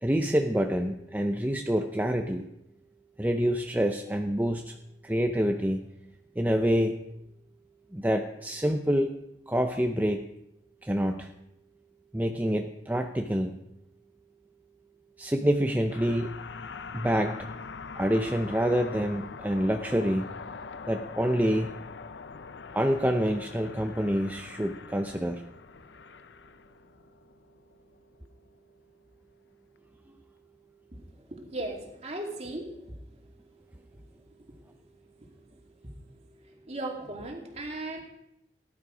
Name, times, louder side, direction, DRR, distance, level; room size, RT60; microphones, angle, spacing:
voice 1, 0.0-2.5 3.2-4.8 5.0-5.8 6.4-7.0 7.9-9.2 9.5-10.3 10.8-11.3 12.1-13.6 15.2-16.4 16.9-17.5 18.0-20.3 20.9-21.7 22.7-25.4, equal, 10° right, 4 dB, 0.7 m, -27 dB
sound 1, 15.9-28.6, left 5 dB, 80° left, 0.7 m, -43 dB
voice 2, 31.3-32.7 36.7-38.0, right 2 dB, 35° right, 2 dB, 2.6 m, -36 dB
18.0 x 11.0 x 5.0 m, 0.84 s
head